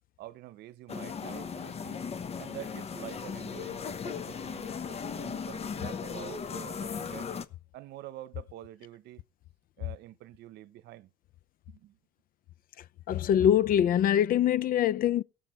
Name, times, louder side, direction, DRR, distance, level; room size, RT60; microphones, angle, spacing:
voice 1, 0.2-2.0 2.4-7.3 7.7-9.2 9.8-11.1 11.7-12.0, right 14 dB, 80° right, 0.8 m, -47 dB
sound 1, 0.9-7.4, left 6 dB, 40° left, 1.0 m, -37 dB
voice 2, 13.1-15.2, left 10 dB, 55° left, 0.5 m, -23 dB
18.0 x 6.9 x 4.3 m
cardioid pair, 110°, 17 cm